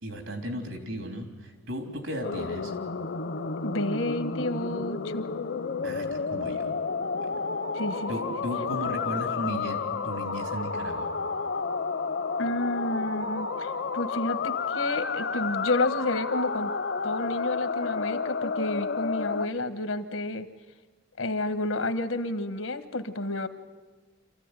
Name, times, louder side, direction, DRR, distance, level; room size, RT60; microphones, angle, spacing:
voice 1, 0.0-2.7 5.8-6.1 6.3-6.7 7.2-7.3 8.1-11.1, equal, 90° right, 5 dB, 3.6 m, -35 dB
sound 1, 2.2-19.5, left 4 dB, 60° left, 0.6 m, -31 dB
voice 2, 3.6-5.3 7.7-8.1 12.4-16.7 17.0-20.5 21.2-23.5, left 2 dB, 90° left, 10 dB, 1.4 m, -30 dB
27.0 x 15.0 x 9.8 m, 1.3 s
head